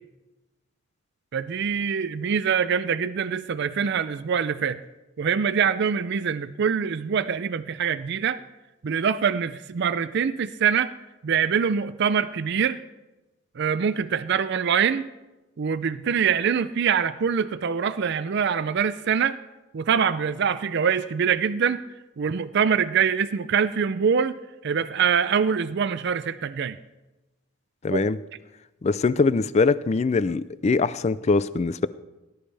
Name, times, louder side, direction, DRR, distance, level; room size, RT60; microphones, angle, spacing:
voice 1, 1.3-4.8 5.2-8.4 8.8-10.9 11.2-12.8 13.6-15.1 15.6-19.4 19.7-21.8 22.2-24.4 24.6-26.8 27.9-28.0, right 7 dB, 55° right, 14 dB, 0.4 m, -24 dB
voice 2, 27.8-28.2 28.8-31.9, left 4 dB, 30° left, 16 dB, 0.4 m, -22 dB
19.0 x 12.0 x 3.4 m, 1.1 s
head